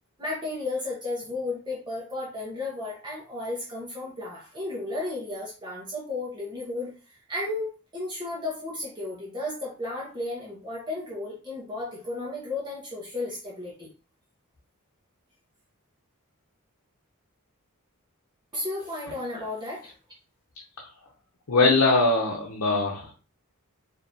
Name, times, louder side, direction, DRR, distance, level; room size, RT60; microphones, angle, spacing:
voice 1, 0.2-13.9 18.5-19.9, left 2 dB, 20° right, -5 dB, 1.2 m, -34 dB
voice 2, 21.5-23.1, left 3 dB, 85° left, -1 dB, 0.8 m, -21 dB
4.7 x 2.9 x 2.8 m, 0.35 s
head